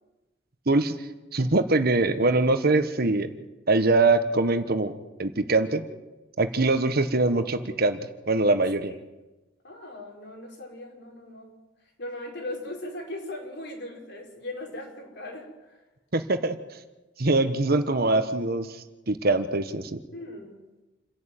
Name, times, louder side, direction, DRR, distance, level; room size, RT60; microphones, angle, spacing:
voice 1, 0.7-1.0 1.3-3.3 3.7-4.9 5.2-5.8 6.4-8.0 8.3-8.9 16.1-16.6 17.2-18.7 19.1-20.0, right 2 dB, 55° right, 9 dB, 1.4 m, -23 dB
voice 2, 9.6-11.5 12.0-15.8 20.1-20.6, left 1 dB, 65° left, 0 dB, 5.4 m, -38 dB
28.5 x 11.0 x 9.1 m, 1.1 s
head